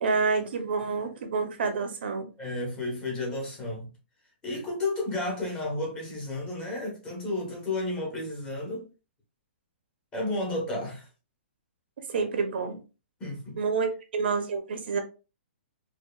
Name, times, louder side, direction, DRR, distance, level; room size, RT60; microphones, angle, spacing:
voice 1, 0.0-2.3 12.1-12.8 13.6-15.0, right 4 dB, 55° right, 0.7 m, -28 dB
voice 2, 2.4-3.9 4.4-8.9 10.1-11.1 13.2-13.6, left 2 dB, 10° left, 1.0 m, -32 dB
4.5 x 2.5 x 2.3 m
hypercardioid pair, 165°, 6 cm